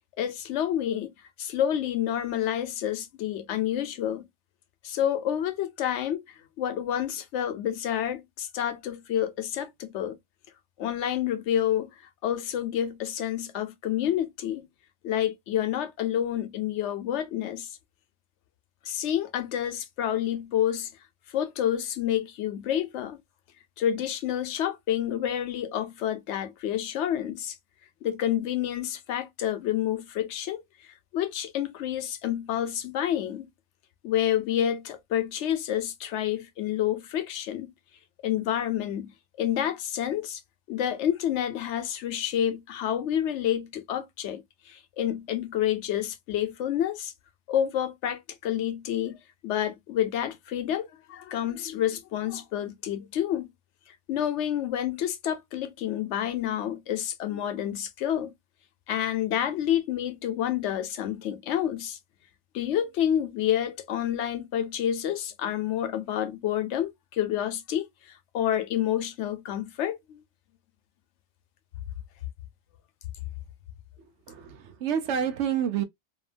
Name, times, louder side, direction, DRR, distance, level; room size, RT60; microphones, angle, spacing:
voice 1, 0.2-4.2 4.8-6.2 6.6-10.2 10.8-14.7 15.0-17.7 18.9-20.9 21.3-23.2 23.8-27.6 28.0-30.6 31.1-33.5 34.0-37.7 38.2-39.1 39.4-40.4 40.7-47.1 47.5-49.2 49.4-53.5 54.1-58.3 58.9-62.0 62.5-70.2, left 10 dB, 80° left, 0.9 m, -29 dB
voice 2, 74.3-75.8, right 8 dB, 80° right, 0.9 m, -28 dB
2.7 x 2.3 x 2.4 m
omnidirectional pair, 1.2 m